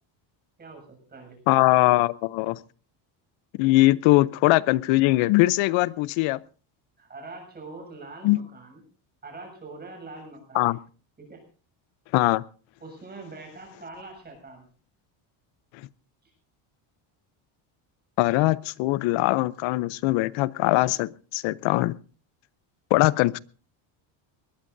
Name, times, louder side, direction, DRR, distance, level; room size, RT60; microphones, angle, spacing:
voice 1, 0.6-1.4 7.0-8.8 9.2-10.8 11.2-11.4 12.8-14.6 16.2-16.3, right 3 dB, 20° right, 7.2 m, -43 dB
voice 2, 1.5-2.6 3.6-6.4 8.2-8.4 10.5-10.8 12.1-12.4 18.2-22.0 22.9-23.4, left 19 dB, 70° left, 0.7 m, -21 dB
21.5 x 20.5 x 2.6 m
cardioid pair, 160°, 48 cm